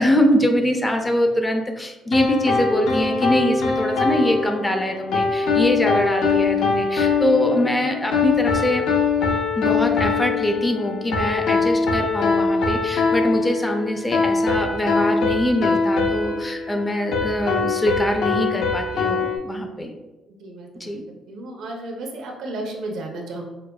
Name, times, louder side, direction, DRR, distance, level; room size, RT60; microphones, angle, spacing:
voice 1, 0.0-8.8 9.6-19.9 20.8-21.0, left 1 dB, 15° left, 4 dB, 0.4 m, -23 dB
sound 1, 2.1-19.4, left 4 dB, 75° left, 0.5 m, -22 dB
voice 2, 20.4-21.0 21.3-23.5, right 2 dB, 75° right, 2 dB, 0.6 m, -33 dB
4.8 x 2.2 x 2.2 m, 1.0 s
cardioid pair, 140°, 0 cm